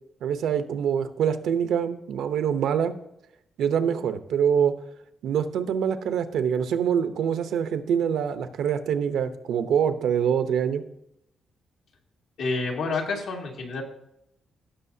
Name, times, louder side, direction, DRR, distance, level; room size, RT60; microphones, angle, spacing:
voice 1, 0.2-2.9 3.6-4.7 5.2-10.8, right 8 dB, 85° right, 9 dB, 0.8 m, -25 dB
voice 2, 12.4-13.8, left 3 dB, 75° left, 0 dB, 2.1 m, -28 dB
16.5 x 6.4 x 2.8 m, 0.80 s
wide cardioid pair, 175°, 0 cm